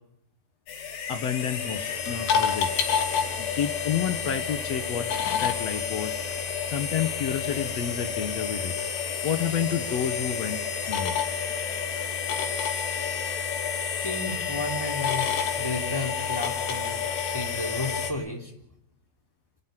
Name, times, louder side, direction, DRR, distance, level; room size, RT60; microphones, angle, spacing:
sound 1, 0.7-18.1, left 7 dB, 85° left, 5.0 m, -29 dB
voice 1, 1.1-2.7 3.4-6.2 6.7-8.7 9.2-10.6 10.9-11.1, left 8 dB, 65° left, 8 dB, 1.7 m, -30 dB
voice 2, 13.9-18.5, left 2 dB, 5° left, 1 dB, 3.2 m, -33 dB
27.0 x 14.0 x 9.6 m, 0.74 s
omnidirectional pair, 4.7 m